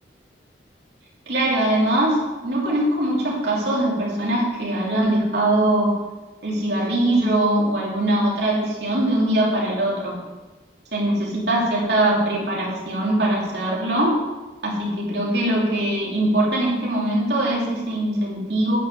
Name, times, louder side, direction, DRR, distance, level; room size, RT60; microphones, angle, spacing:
voice 1, 1.3-5.9 6.4-10.2 10.9-14.2 14.6-18.8, right 1 dB, 70° right, -4 dB, 2.9 m, -22 dB
9.4 x 6.1 x 7.2 m, 1.2 s
head